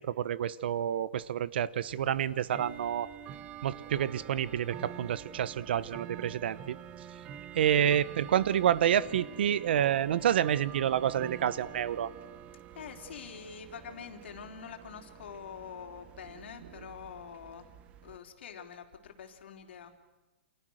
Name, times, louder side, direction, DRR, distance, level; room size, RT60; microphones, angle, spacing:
voice 1, 0.0-3.1 3.6-6.8 7.5-12.1, right 10 dB, 60° right, 18 dB, 1.1 m, -28 dB
Bell / Tick-tock, 1.8-18.2, right 10 dB, 20° right, 0.9 m, -47 dB
voice 2, 12.5-17.7 18.0-20.0, left 7 dB, 70° left, 5 dB, 3.9 m, -46 dB
29.0 x 28.0 x 6.5 m, 1.2 s
hypercardioid pair, 160°, 6 cm